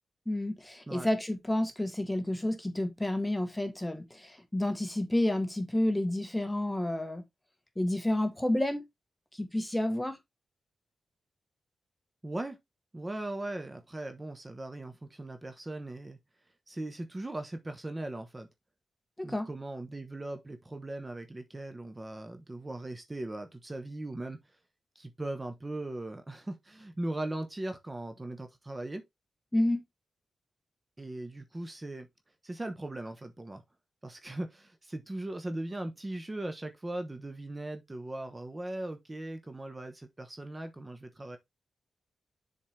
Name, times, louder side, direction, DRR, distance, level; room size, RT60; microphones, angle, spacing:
voice 1, 0.3-7.2 7.8-8.8 9.3-10.2 19.2-19.5 29.5-29.8, left 1 dB, 10° left, 1.1 m, -30 dB
voice 2, 12.2-12.6 12.9-16.2 16.7-18.5 19.2-24.4 24.9-29.0 31.0-32.1 32.4-33.6 34.0-41.4, right 1 dB, 20° right, 1.0 m, -39 dB
7.2 x 4.2 x 3.3 m
cardioid pair, 85°, 0 cm